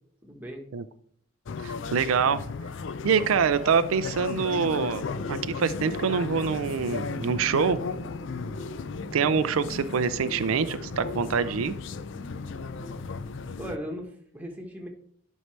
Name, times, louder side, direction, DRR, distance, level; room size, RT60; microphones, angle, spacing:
voice 1, 0.2-0.7 13.6-14.9, equal, 10° right, 1 dB, 1.3 m, -38 dB
sound 1, 1.5-13.8, left 5 dB, 60° left, 0.4 m, -36 dB
voice 2, 1.6-2.4 3.0-7.8 9.1-11.7, right 6 dB, 85° right, 13 dB, 0.4 m, -25 dB
sound 2, 4.2-14.0, left 1 dB, 85° left, 1.5 m, -43 dB
11.0 x 5.4 x 3.3 m, 0.64 s
head